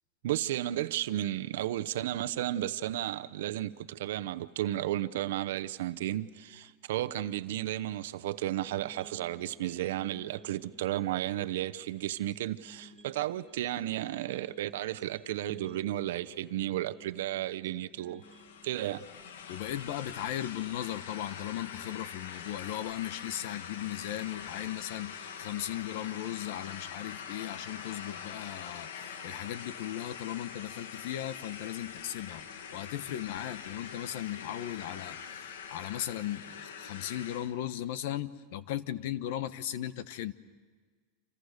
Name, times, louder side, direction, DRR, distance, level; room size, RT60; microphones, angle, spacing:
voice 1, 0.2-18.2 18.6-19.0, right 13 dB, 70° right, 0.9 m, -33 dB
sound 1, 8.6-20.7, equal, ahead, 3.7 m, -56 dB
sound 2, 18.2-37.5, left 7 dB, 90° left, 2.0 m, -44 dB
voice 2, 19.5-32.4 32.7-40.3, left 12 dB, 55° left, 1.0 m, -37 dB
29.5 x 27.5 x 6.6 m
supercardioid pair, 170°, 0 cm